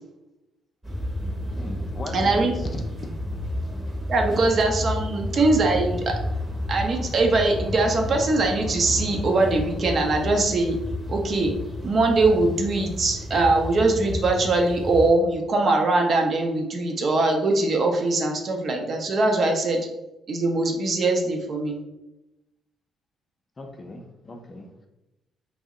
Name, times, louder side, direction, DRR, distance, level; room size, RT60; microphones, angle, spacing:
sound 1, 0.8-15.1, left 1 dB, 20° right, 0.8 m, -31 dB
voice 1, 1.6-2.8 23.6-24.7, left 2 dB, 35° left, 3 dB, 0.5 m, -38 dB
voice 2, 2.1-2.5 4.1-6.1 6.7-10.8 11.1-11.5 11.8-19.8 20.3-21.8, right 2 dB, 50° right, 2 dB, 0.6 m, -22 dB
2.6 x 2.0 x 3.6 m, 0.94 s
cardioid pair, 90°, 0 cm